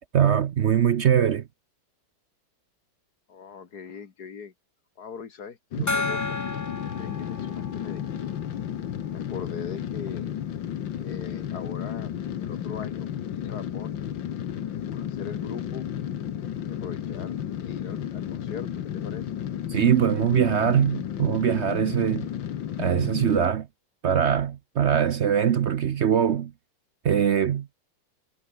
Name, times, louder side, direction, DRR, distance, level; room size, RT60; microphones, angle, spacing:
voice 1, 0.1-1.5 19.7-22.3 22.8-23.7 24.0-26.5 27.0-27.7, right 8 dB, 65° right, 0.7 m, -22 dB
voice 2, 3.3-4.5 5.0-6.4 6.9-8.4 9.1-10.3 11.0-14.0 14.7-15.9 16.7-19.3, left 6 dB, 55° left, 2.2 m, -41 dB
sound 1, 5.7-23.5, left 10 dB, 90° left, 2.0 m, -33 dB
Gong, 5.9-9.1, left 2 dB, 30° left, 0.3 m, -33 dB
omnidirectional pair, 2.0 m